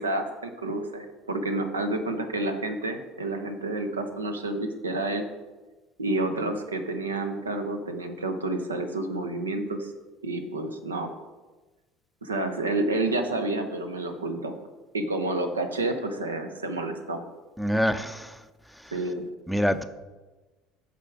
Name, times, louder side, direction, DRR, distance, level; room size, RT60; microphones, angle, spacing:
voice 1, 0.0-5.3 6.0-9.9 10.2-11.1 12.2-14.6 14.9-17.2 18.9-19.3, right 2 dB, 80° right, 7 dB, 0.7 m, -29 dB
voice 2, 17.6-18.3 19.5-19.8, equal, ahead, 11 dB, 0.5 m, -25 dB
8.3 x 5.0 x 4.6 m, 1.2 s
figure-of-eight pair, 65°, 0 cm